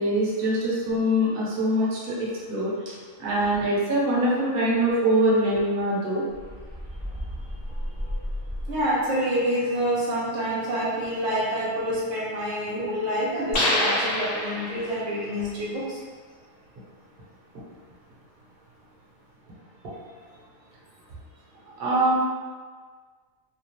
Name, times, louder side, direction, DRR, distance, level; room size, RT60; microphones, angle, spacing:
voice 1, 0.0-2.7 3.2-6.3 21.8-22.1, right 1 dB, 50° right, -6 dB, 0.9 m, -23 dB
sound 1, 6.3-9.1, equal, 20° left, 0.6 m, -34 dB
voice 2, 7.7-8.1 8.7-16.0, equal, 75° right, -6 dB, 1.0 m, -27 dB
sound 2, 13.5-15.1, left 1 dB, 55° left, 0.7 m, -26 dB
2.8 x 2.0 x 2.9 m, 1.5 s
omnidirectional pair, 1.3 m